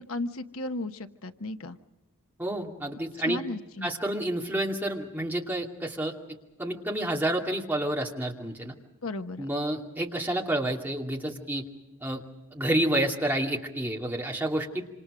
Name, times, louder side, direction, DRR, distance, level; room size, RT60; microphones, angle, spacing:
voice 1, 0.0-1.8 3.2-3.9 9.0-9.5, left 2 dB, 70° left, 8 dB, 1.1 m, -35 dB
voice 2, 2.4-3.4 3.8-6.1 6.6-8.7 9.4-11.6 12.0-12.2 12.5-14.9, right 1 dB, 10° right, -1 dB, 2.6 m, -29 dB
27.0 x 27.0 x 5.0 m, 1.0 s
head